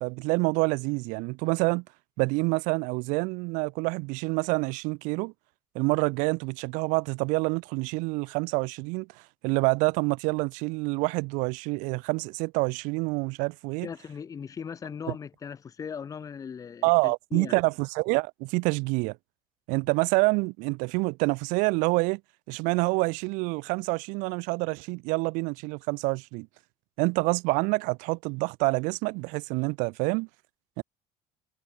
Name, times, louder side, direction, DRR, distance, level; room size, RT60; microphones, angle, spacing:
voice 1, 0.0-1.8 2.2-5.3 5.7-9.1 9.4-13.9 16.8-19.1 19.7-22.2 22.5-26.5 27.0-30.3 30.8-30.9, right 28 dB, 80° right, 0.7 m, -27 dB
voice 2, 13.8-17.6, left 7 dB, 25° left, 1.9 m, -38 dB
cardioid pair, 145°, 13 cm